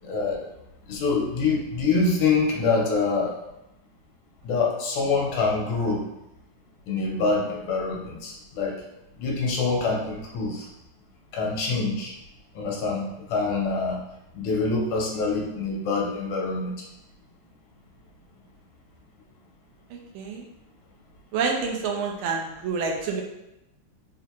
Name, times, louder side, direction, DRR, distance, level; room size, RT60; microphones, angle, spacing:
voice 1, 0.0-0.5 0.9-3.3 4.4-6.0 6.9-8.8 9.2-10.7 11.3-12.1 12.5-14.0 14.3-16.7, left 4 dB, 90° left, -1 dB, 1.6 m, -25 dB
voice 2, 21.3-23.2, right 5 dB, 90° right, 1 dB, 1.5 m, -27 dB
4.2 x 2.5 x 2.9 m, 0.90 s
omnidirectional pair, 2.2 m